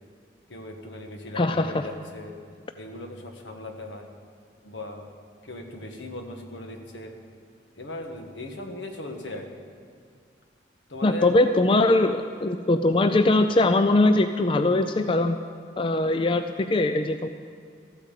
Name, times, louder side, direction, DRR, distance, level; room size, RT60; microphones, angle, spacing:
voice 1, 0.5-2.3 2.7-4.1 4.6-5.1 5.4-7.1 7.7-9.5 10.9-11.4, left 1 dB, 80° left, 3 dB, 1.6 m, -38 dB
voice 2, 1.4-1.8 11.0-15.4 15.8-17.3, left 2 dB, 30° left, 8 dB, 0.4 m, -21 dB
14.0 x 8.6 x 7.4 m, 2.1 s
head